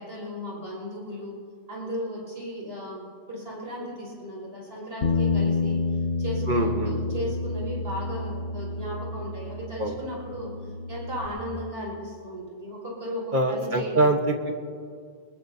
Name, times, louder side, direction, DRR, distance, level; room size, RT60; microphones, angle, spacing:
voice 1, 0.0-1.4 1.7-5.8 6.2-14.2, equal, 65° right, -4 dB, 5.7 m, -36 dB
Bass guitar, 5.0-11.3, left 3 dB, 65° left, 1.1 m, -29 dB
voice 2, 6.5-7.0 9.8-10.0 13.3-14.5, right 2 dB, 50° right, 3 dB, 1.3 m, -24 dB
22.5 x 20.5 x 2.7 m, 2.1 s
omnidirectional pair, 1.1 m